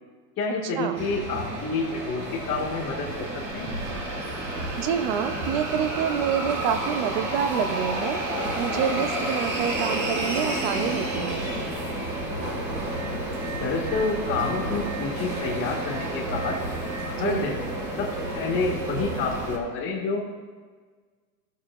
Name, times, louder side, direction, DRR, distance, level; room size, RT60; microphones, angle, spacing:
voice 1, 0.4-3.7 13.6-16.6 17.0-17.6 18.0-18.1 18.3-20.2, left 4 dB, 25° left, -8 dB, 1.5 m, -28 dB
sound 1, 1.0-19.6, right 1 dB, 80° right, 2.7 m, -30 dB
voice 2, 4.8-8.2 8.6-11.5 17.1-17.5, right 8 dB, 30° right, 9 dB, 0.5 m, -27 dB
16.5 x 6.5 x 2.4 m, 1.5 s
supercardioid pair, 155°, 49 cm